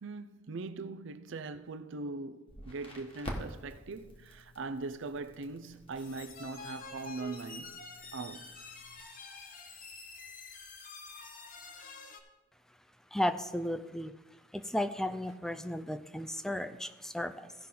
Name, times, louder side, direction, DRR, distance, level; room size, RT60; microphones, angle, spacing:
voice 1, 0.0-7.8 8.1-8.5, right 3 dB, 65° right, 0.5 m, -41 dB
Crackle, 2.5-9.0, equal, 30° left, 1.3 m, -48 dB
sound 1, 6.0-12.2, left 3 dB, 45° left, 0.9 m, -47 dB
voice 2, 13.1-14.1 14.5-17.5, left 1 dB, ahead, 0.4 m, -34 dB
16.0 x 5.9 x 3.8 m
head